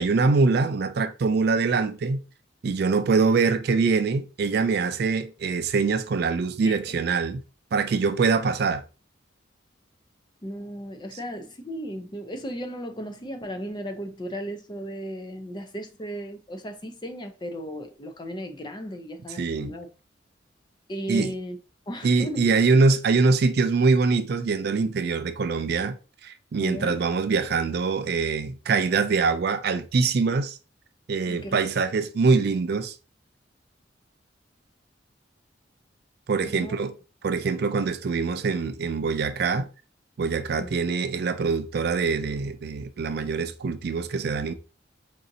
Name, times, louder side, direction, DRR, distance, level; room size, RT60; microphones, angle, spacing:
voice 1, 0.0-2.2 2.6-7.4 7.7-8.8 19.4-19.7 21.1-21.3 22.0-26.0 26.2-30.6 31.1-32.9 36.3-36.9 37.2-39.7 40.2-44.5, right 4 dB, 60° right, 0.4 m, -24 dB
voice 2, 6.6-7.0 10.4-19.9 20.9-21.6 21.9-22.5 26.6-27.0 31.3-31.6 36.4-36.8 40.6-40.7, equal, 25° left, 0.5 m, -35 dB
4.8 x 2.7 x 2.6 m
head